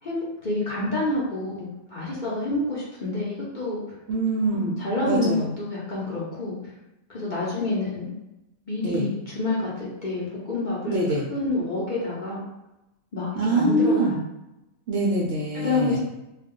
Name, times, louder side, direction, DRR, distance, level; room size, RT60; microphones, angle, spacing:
voice 1, 0.0-3.8 4.5-6.6 7.1-8.1 8.7-11.0 11.3-12.4 13.1-14.2 15.5-16.0, left 2 dB, 40° left, -7 dB, 0.7 m, -28 dB
voice 2, 4.1-4.8 5.1-5.5 8.8-9.1 10.9-11.2 13.3-14.1 14.9-16.0, right 2 dB, 65° right, -4 dB, 0.6 m, -24 dB
2.4 x 2.3 x 3.6 m, 0.93 s
omnidirectional pair, 1.5 m